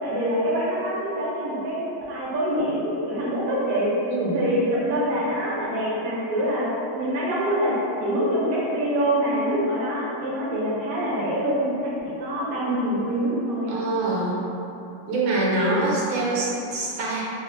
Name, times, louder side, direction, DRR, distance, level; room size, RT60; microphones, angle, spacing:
voice 1, 0.0-3.9 4.2-6.7 6.9-11.9 12.2-13.8, equal, 65° right, -6 dB, 0.9 m, -25 dB
voice 2, 13.7-14.4 15.1-17.2, right 2 dB, 85° right, -5 dB, 1.3 m, -24 dB
3.0 x 2.7 x 2.5 m, 2.9 s
omnidirectional pair, 2.1 m